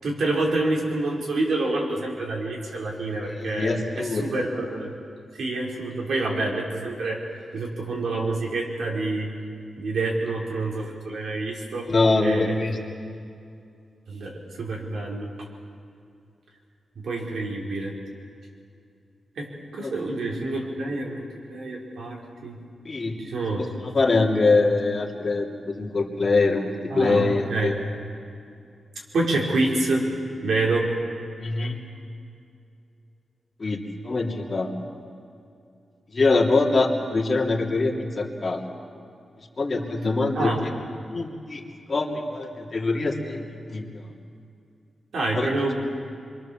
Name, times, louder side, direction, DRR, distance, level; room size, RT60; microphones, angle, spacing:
voice 1, 0.0-4.9 5.3-7.2 7.5-9.3 9.8-11.9 12.2-12.6 14.1-15.3 17.0-17.9 19.4-19.5 19.7-21.2 21.5-22.6 23.2-23.9 26.9-27.7 29.1-30.1 30.4-30.9 40.3-40.6 45.1-45.7, right 2 dB, 75° right, -1 dB, 4.9 m, -27 dB
voice 2, 3.2-4.3 11.9-12.8 19.8-19.9 22.8-23.2 23.8-27.8 31.4-31.8 33.6-34.7 36.1-38.6 39.6-40.5 41.1-41.6 41.9-44.0 45.3-45.6, left 3 dB, 35° left, -1 dB, 2.9 m, -24 dB
27.5 x 23.5 x 7.4 m, 2.4 s
wide cardioid pair, 145°, 0 cm